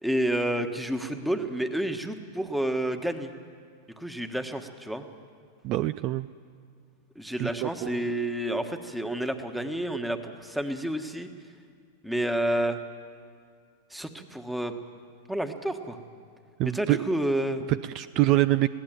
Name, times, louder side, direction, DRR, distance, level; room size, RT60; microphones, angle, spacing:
voice 1, 0.0-3.3 4.0-5.1 7.1-11.3 12.0-12.8 13.9-14.7 15.3-16.0 16.6-17.6, right 1 dB, 5° right, 7 dB, 1.4 m, -29 dB
voice 2, 5.6-6.3 7.4-8.1 16.6-17.0 17.7-18.7, right 16 dB, 45° right, 15 dB, 0.4 m, -25 dB
20.5 x 16.0 x 9.1 m, 2.1 s
hypercardioid pair, 105°, 0 cm